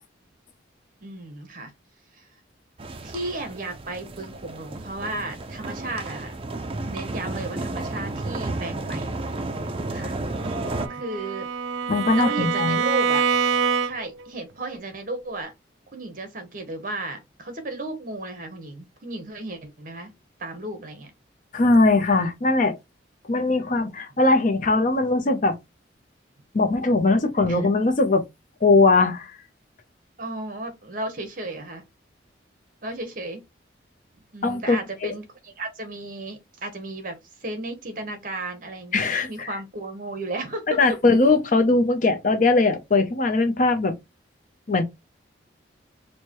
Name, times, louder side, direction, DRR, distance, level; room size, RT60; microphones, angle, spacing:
voice 1, 1.0-1.7 2.1-2.2 3.0-6.4 6.8-9.1 9.9-10.2 10.9-11.5 12.1-13.2 13.8-15.5 15.9-20.1 20.4-21.1 27.5-27.6 30.2-31.8 32.8-33.4 34.3-40.8, right 2 dB, 45° right, 1.0 m, -34 dB
sound 1, 2.8-10.9, right 2 dB, 30° right, 0.4 m, -32 dB
Bowed string instrument, 10.4-14.3, right 6 dB, 90° right, 0.4 m, -25 dB
voice 2, 11.9-12.8 21.5-22.8 23.3-25.6 26.5-28.3 28.6-29.3 34.4-35.1 38.9-39.5 40.7-43.9 44.7-44.8, left 3 dB, 45° left, 0.6 m, -20 dB
4.5 x 2.2 x 3.0 m
head